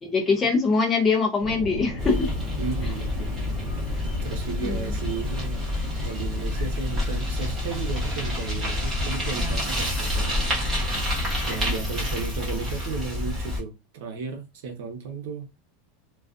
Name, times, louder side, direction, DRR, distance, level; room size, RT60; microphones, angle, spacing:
voice 1, 0.0-2.3 4.6-4.9, left 4 dB, 15° left, 0.5 m, -23 dB
sound 1, 1.4-12.3, left 1 dB, 35° right, 1.1 m, -37 dB
Bicycle, 2.0-13.6, left 1 dB, 15° right, 1.0 m, -28 dB
voice 2, 2.6-3.3 4.2-5.6 6.0-10.5 11.5-15.5, right 5 dB, 65° right, 0.8 m, -34 dB
2.4 x 2.3 x 2.4 m
supercardioid pair, 170°, 0 cm